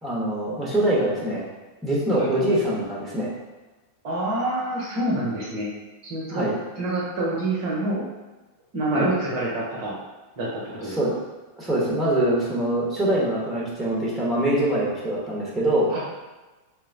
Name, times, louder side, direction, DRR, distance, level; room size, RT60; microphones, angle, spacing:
voice 1, 0.0-1.4 1.8-3.3 6.3-6.5 8.9-9.1 10.8-11.1 11.6-15.9, right 1 dB, 15° right, -5 dB, 0.9 m, -24 dB
voice 2, 4.0-5.7 6.0-6.4 6.8-8.0 8.7-10.0 10.4-11.0 15.9-16.0, right 1 dB, 50° right, -4 dB, 0.8 m, -27 dB
4.4 x 2.0 x 2.5 m, 1.2 s
figure-of-eight pair, 90°, 0 cm